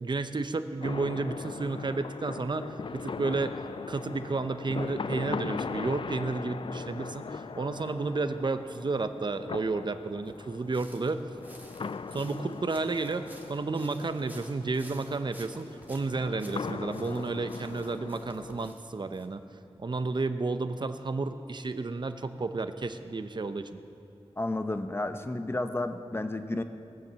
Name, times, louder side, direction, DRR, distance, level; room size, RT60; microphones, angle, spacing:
voice 1, 0.0-3.6 3.9-11.2 12.1-19.4 19.8-23.8, right 3 dB, 45° right, 10 dB, 0.6 m, -32 dB
sound 1, 0.8-18.7, left 5 dB, 55° left, 0.4 m, -40 dB
sound 2, 10.3-19.3, right 1 dB, 15° right, 1.3 m, -54 dB
voice 2, 24.4-26.6, left 2 dB, 20° left, 8 dB, 0.7 m, -32 dB
19.5 x 7.3 x 7.4 m, 2.6 s
wide cardioid pair, 95°, 11 cm